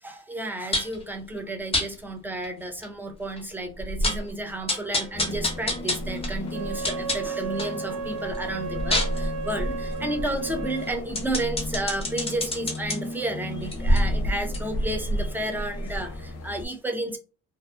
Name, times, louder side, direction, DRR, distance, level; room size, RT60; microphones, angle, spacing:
voice 1, 0.0-17.2, right 1 dB, 5° right, 0.5 m, -32 dB
sound 1, 0.7-1.0 1.7-1.9 2.4-2.5 2.8-2.9 3.4-3.5 3.8-4.3 4.7-7.8 8.2-13.0 13.6-16.3 16.6-16.7, equal, 20° left, 0.8 m, -27 dB
sound 2, 5.1-16.7, left 3 dB, 55° left, 0.6 m, -38 dB
Wind instrument woodwind instrument, 6.4-10.9, right 5 dB, 85° right, 0.5 m, -34 dB
2.5 x 2.2 x 2.4 m
cardioid pair, 90°, 30 cm